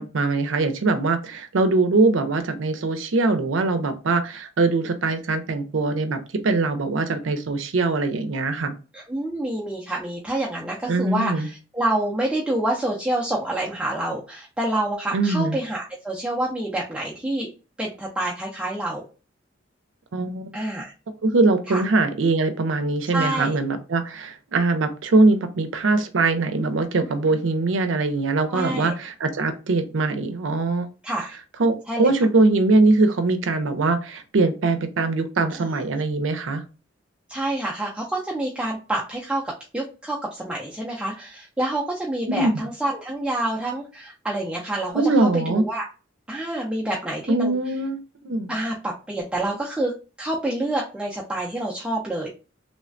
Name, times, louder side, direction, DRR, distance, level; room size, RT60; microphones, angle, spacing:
voice 1, 0.0-8.7 10.9-11.5 15.1-15.6 20.1-20.6 21.2-30.9 31.6-36.6 42.3-42.5 44.9-45.6 47.3-48.5, right 3 dB, 80° right, 0.5 m, -22 dB
voice 2, 8.9-17.5 17.8-19.1 20.5-20.9 21.7-21.8 23.1-23.6 28.5-28.9 31.0-31.4 31.9-32.1 35.6-35.7 35.9-36.0 37.3-45.9 46.3-47.6 48.5-49.9 50.2-52.3, right 1 dB, 5° right, 0.4 m, -27 dB
3.2 x 2.1 x 2.5 m
head